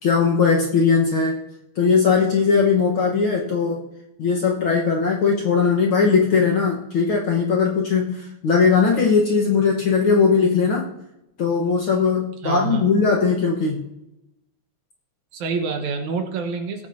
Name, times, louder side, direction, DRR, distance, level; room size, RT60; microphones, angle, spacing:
voice 1, 0.0-1.4 1.8-3.8 4.2-10.9 11.4-13.8, left 5 dB, 60° left, -1 dB, 1.5 m, -19 dB
voice 2, 12.4-12.9 15.3-16.9, right 4 dB, 70° right, 4 dB, 2.5 m, -27 dB
18.5 x 8.2 x 2.7 m, 0.88 s
omnidirectional pair, 3.6 m